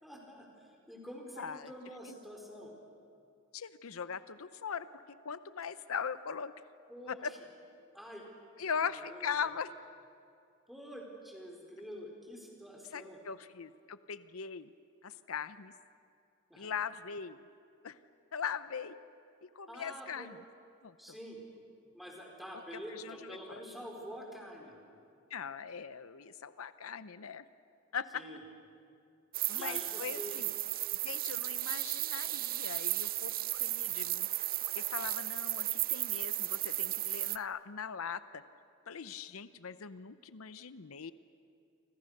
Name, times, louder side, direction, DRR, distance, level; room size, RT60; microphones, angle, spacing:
voice 1, 0.0-2.7 6.9-7.3 7.9-8.2 8.6-9.4 10.7-13.2 16.5-16.7 19.7-20.3 21.0-21.4 21.9-24.8 28.1-28.4 29.5-30.4, equal, ahead, -1 dB, 4.5 m, -47 dB
voice 2, 1.4-1.7 2.1-2.2 3.5-6.5 7.1-7.3 8.6-9.7 12.9-14.7 15.0-15.7 16.6-17.4 17.8-18.0 18.3-18.9 19.4-20.4 20.8-21.0 22.9-23.6 25.3-27.4 27.9-28.2 29.5-30.5 31.0-34.5 34.7-38.4 38.9-41.1, left 6 dB, 85° left, 13 dB, 0.7 m, -40 dB
sound 1, 29.3-37.4, right 16 dB, 45° right, 0.5 m, -35 dB
29.0 x 26.0 x 6.6 m, 2.5 s
head